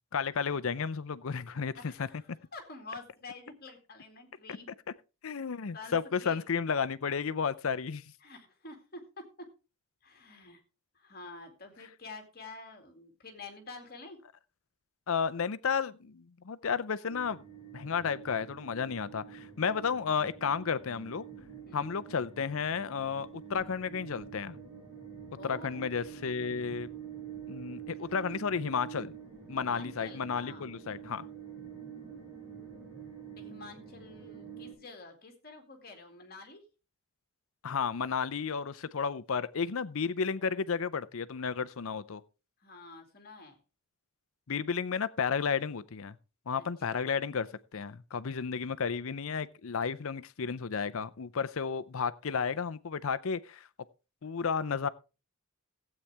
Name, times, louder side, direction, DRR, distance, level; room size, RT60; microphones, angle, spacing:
voice 1, 0.1-1.7 2.0-2.1 4.5-4.6 5.2-8.0 15.1-17.4 17.7-21.2 21.7-24.6 25.4-26.9 27.5-29.1 29.5-31.2 37.6-42.2 44.5-46.2 46.5-47.5 47.7-53.7 54.2-54.9, left 6 dB, 65° left, 0.5 m, -32 dB
voice 2, 1.8-4.7 5.7-6.5 8.2-9.5 10.0-10.6 10.9-14.2 21.7-22.0 25.3-25.9 29.6-30.7 33.4-36.7 42.6-43.6 46.6-46.7, left 3 dB, 45° left, 2.3 m, -48 dB
sound 1, 17.1-34.7, right 8 dB, 10° right, 6.6 m, -47 dB
15.5 x 8.5 x 3.4 m
head